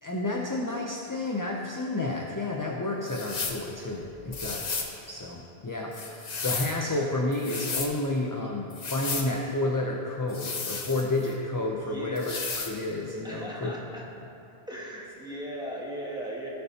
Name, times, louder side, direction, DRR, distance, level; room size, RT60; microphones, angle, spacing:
voice 1, 0.0-4.8 5.1-13.8, left 2 dB, 25° left, 0 dB, 0.5 m, -31 dB
sound 1, 3.1-3.6 4.3-4.9 5.9-6.8 7.3-7.9 8.7-9.3 10.3-11.3 12.2-12.8, left 4 dB, 45° left, 0.8 m, -33 dB
voice 2, 11.9-12.4 13.2-14.0 14.7-16.5, right 1 dB, 5° right, -4 dB, 1.3 m, -37 dB
16.5 x 6.9 x 2.9 m, 2.8 s
omnidirectional pair, 1.1 m